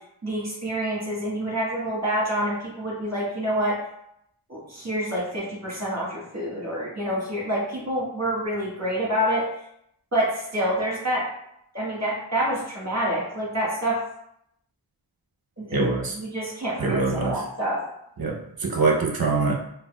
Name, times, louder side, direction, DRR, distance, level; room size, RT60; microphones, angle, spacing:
voice 1, 0.2-3.7 4.5-9.4 10.1-11.2 11.7-14.0 15.6-15.9 16.1-17.8, right 1 dB, 35° right, -5 dB, 1.4 m, -27 dB
voice 2, 15.7-16.2 16.8-17.3 18.2-19.6, right 3 dB, 50° right, 0 dB, 0.7 m, -24 dB
4.0 x 2.3 x 2.2 m, 0.76 s
wide cardioid pair, 50°, 48 cm